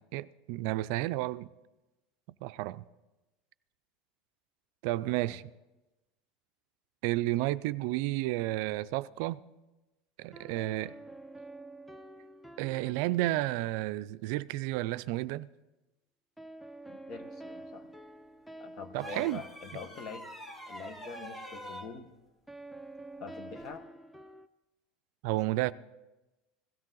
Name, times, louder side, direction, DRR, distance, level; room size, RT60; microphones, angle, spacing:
voice 1, 0.1-1.5 2.4-2.8 4.8-5.4 7.0-9.4 10.2-10.9 12.6-15.5 18.9-19.4 25.2-25.7, right 17 dB, 70° right, 0.4 m, -31 dB
voice 2, 5.1-5.4 16.9-17.9 18.6-20.3 20.7-22.1 23.2-23.8, left 5 dB, 50° left, 1.3 m, -45 dB
sound 1, 10.3-13.7 16.4-20.2 22.5-24.5, right 2 dB, ahead, 0.6 m, -48 dB
sound 2, 19.0-21.9 23.6-23.8, equal, 20° left, 1.8 m, -45 dB
17.0 x 13.0 x 3.9 m
supercardioid pair, 95°, 0 cm